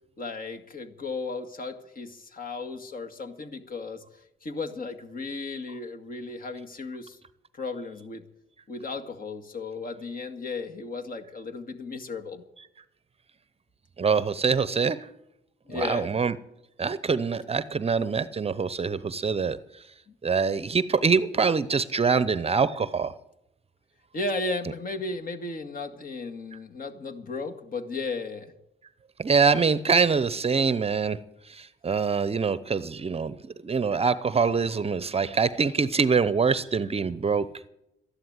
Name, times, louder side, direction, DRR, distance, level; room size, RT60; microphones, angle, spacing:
voice 1, 0.2-4.0 4.4-7.2 7.5-8.3 8.7-12.4 15.7-16.1 20.1-20.2 24.1-28.5, left 3 dB, 45° left, 5 dB, 2.0 m, -35 dB
voice 2, 14.0-15.1 15.7-16.4 16.8-19.6 20.2-23.1 29.2-31.2 31.5-37.5, right 5 dB, 30° right, 16 dB, 0.7 m, -24 dB
13.0 x 11.0 x 9.4 m, 0.85 s
cardioid pair, 90°, 20 cm